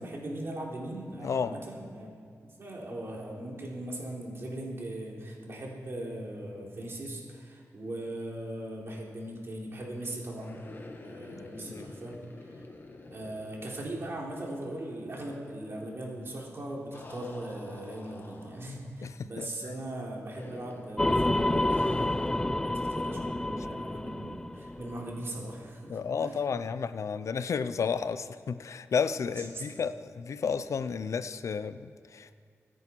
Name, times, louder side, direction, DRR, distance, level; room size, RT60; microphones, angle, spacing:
voice 1, 0.0-2.2 2.6-10.6 11.0-12.6 13.1-26.4 29.3-29.7, right 1 dB, 50° right, -2 dB, 3.8 m, -39 dB
voice 2, 1.2-1.5 11.7-11.9 19.0-19.5 25.9-32.3, left 6 dB, 75° left, 13 dB, 0.6 m, -32 dB
sound 1, 10.4-14.5 14.8-14.9 16.9-18.9 20.3-21.0 21.7-22.6, left 2 dB, 40° left, 1.7 m, -48 dB
sound 2, 21.0-25.4, left 1 dB, 10° left, 0.3 m, -29 dB
25.0 x 10.0 x 4.7 m, 2.4 s
wide cardioid pair, 100°, 5 cm